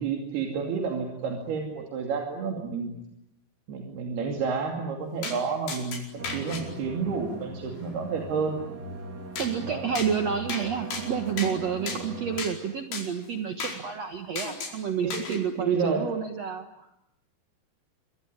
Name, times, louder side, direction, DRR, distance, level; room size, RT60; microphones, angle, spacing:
voice 1, 0.0-2.9 3.7-8.6 9.7-9.9 15.0-16.1, right 5 dB, 90° right, 2 dB, 4.7 m, -30 dB
sound 1, 5.2-5.4 5.7-6.6 9.4-9.5 10.0-10.1 10.5-10.7 10.9-11.5 11.9-12.0 12.4-12.5 12.9-13.1 13.6-13.8 14.4-14.8 15.1-15.4, left 4 dB, 85° left, 6.9 m, -34 dB
sound 2, 6.2-12.4, right 4 dB, 30° right, 2.9 m, -39 dB
voice 2, 9.4-16.9, right 7 dB, 55° right, 6 dB, 2.2 m, -30 dB
26.0 x 23.5 x 9.7 m, 0.82 s
omnidirectional pair, 4.4 m